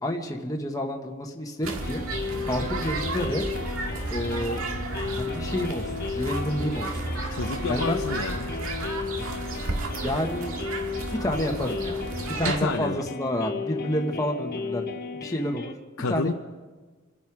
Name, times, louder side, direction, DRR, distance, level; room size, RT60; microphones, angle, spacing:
voice 1, 0.0-2.0 2.5-3.4 4.1-4.6 5.1-7.0 7.7-8.0 9.7-10.5 11.2-15.7 16.1-16.3, equal, 15° left, 1 dB, 1.3 m, -29 dB
sound 1, 1.6-12.6, right 2 dB, 85° right, 1.8 m, -32 dB
sound 2, 1.8-15.7, left 4 dB, 50° left, 1.0 m, -35 dB
voice 2, 7.3-8.5 12.4-13.0 16.0-16.3, left 3 dB, 80° left, 3 dB, 0.8 m, -29 dB
28.0 x 10.5 x 4.8 m, 1.3 s
head